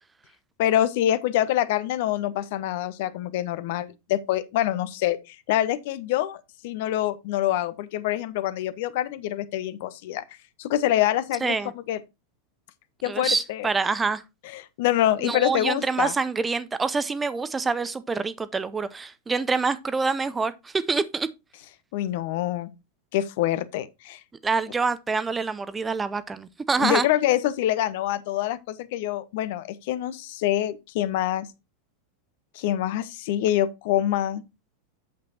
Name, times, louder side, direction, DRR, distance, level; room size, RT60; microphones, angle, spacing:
voice 1, 0.6-10.2 10.6-11.6 11.9-12.0 13.0-13.7 14.4-16.1 21.9-22.7 23.1-24.2 26.8-31.5 32.5-34.4, left 13 dB, 50° left, 0.7 m, -25 dB
voice 2, 11.4-11.7 13.0-14.2 15.2-21.3 24.4-27.1, right 4 dB, 15° right, 0.5 m, -26 dB
8.5 x 7.6 x 2.8 m
figure-of-eight pair, 90°, 0 cm